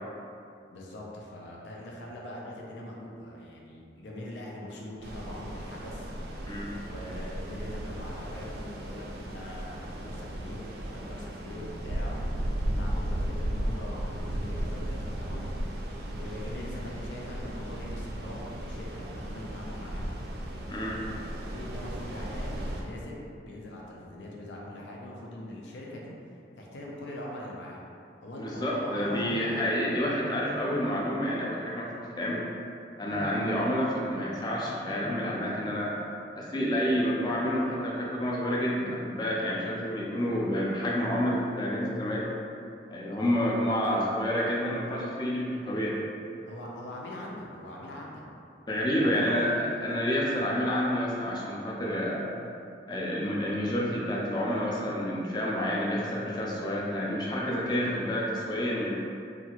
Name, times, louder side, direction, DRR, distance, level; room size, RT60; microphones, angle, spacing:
voice 1, 0.7-6.1 6.8-15.8 16.1-20.2 21.4-26.2 26.6-27.8 28.2-29.8 43.8-44.1 46.5-48.2 49.0-49.6, left 1 dB, 85° left, -3 dB, 0.5 m, -42 dB
sound 1, 5.0-22.8, right 1 dB, 60° right, 0.3 m, -35 dB
voice 2, 20.7-21.0 28.4-32.4 33.0-35.9 36.4-42.3 42.9-46.0 48.7-52.3 52.9-58.9, equal, 25° left, -4 dB, 0.4 m, -29 dB
2.8 x 2.5 x 2.8 m, 2.6 s
head